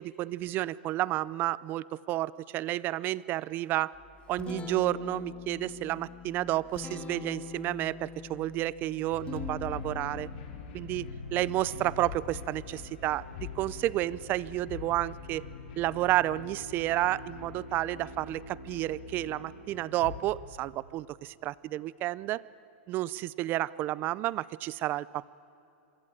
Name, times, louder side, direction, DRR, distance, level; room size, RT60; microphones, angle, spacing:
voice 1, 0.0-3.9 4.3-10.3 10.7-15.5 15.8-22.4 22.9-25.3, right 15 dB, 30° right, 21 dB, 0.5 m, -31 dB
Guitar, 3.9-13.7, left 5 dB, 15° left, 1.5 m, -45 dB
sound 1, 9.1-20.2, left 5 dB, 55° left, 5.0 m, -43 dB
sound 2, 10.6-19.3, left 1 dB, 15° right, 3.8 m, -54 dB
27.0 x 23.0 x 8.9 m, 2.9 s
supercardioid pair, 150°, 7 cm